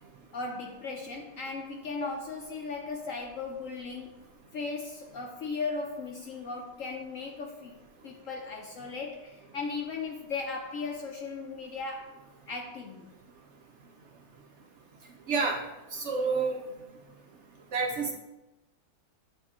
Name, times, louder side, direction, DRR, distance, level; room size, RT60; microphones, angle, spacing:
voice 1, 0.3-4.3 4.5-12.2 12.5-13.1, left 4 dB, 70° left, 1 dB, 0.8 m, -37 dB
voice 2, 15.3-15.6 15.9-16.6 17.7-18.1, right 4 dB, 70° right, 1 dB, 0.6 m, -28 dB
9.3 x 3.3 x 3.6 m, 1.0 s
omnidirectional pair, 1.9 m